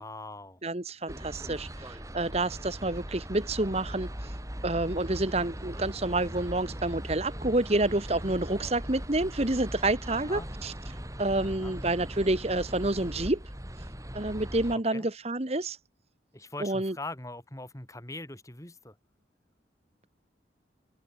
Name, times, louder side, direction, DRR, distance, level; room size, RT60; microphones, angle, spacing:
voice 1, 0.0-0.6 10.1-10.5 11.4-11.8 14.7-15.1 16.3-19.0, left 2 dB, 15° left, 2.4 m, -42 dB
voice 2, 0.6-4.3 4.6-10.7 11.2-13.4 14.1-15.8 16.6-16.9, right 2 dB, 35° right, 1.4 m, -29 dB
sound 1, 1.1-14.8, equal, 15° right, 5.6 m, -39 dB
head